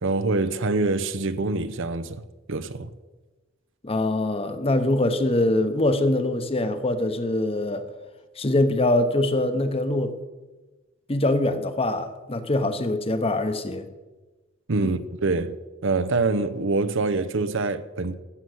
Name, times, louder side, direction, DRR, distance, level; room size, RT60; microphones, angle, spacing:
voice 1, 0.0-2.2 2.5-2.9 14.7-15.6 15.8-18.1, right 3 dB, 70° right, 0.8 m, -25 dB
voice 2, 3.8-7.8 8.4-10.1 11.1-13.9 14.8-14.9, left 1 dB, 30° left, 1.0 m, -23 dB
13.0 x 7.9 x 7.8 m
head